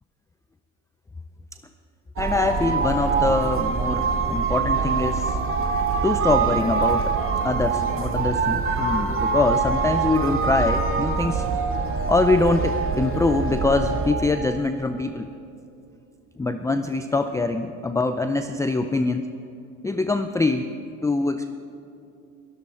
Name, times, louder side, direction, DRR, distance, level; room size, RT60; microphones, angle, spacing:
voice 1, 2.2-5.4 6.0-7.1 7.4-11.5 12.1-15.3 16.4-19.3 19.8-20.7 21.0-21.5, left 3 dB, 10° left, 8 dB, 0.4 m, -24 dB
sound 1, 2.2-14.1, right 5 dB, 35° right, 2.2 m, -24 dB
23.0 x 12.5 x 4.3 m, 2.7 s
supercardioid pair, 105°, 37 cm